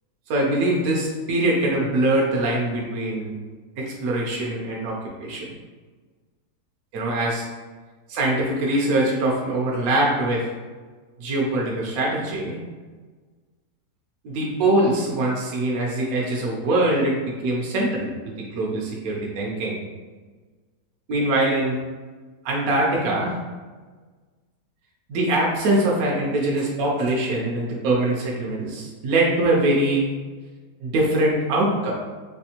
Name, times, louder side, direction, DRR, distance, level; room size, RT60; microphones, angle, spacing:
voice 1, 0.3-3.3 3.8-5.5 6.9-7.5 8.1-10.5 11.2-12.6 14.2-19.8 21.1-21.8 22.4-23.4 25.1-30.1 30.8-31.9, right 1 dB, 70° right, -2 dB, 1.0 m, -23 dB
3.3 x 3.1 x 2.8 m, 1.4 s
omnidirectional pair, 1.7 m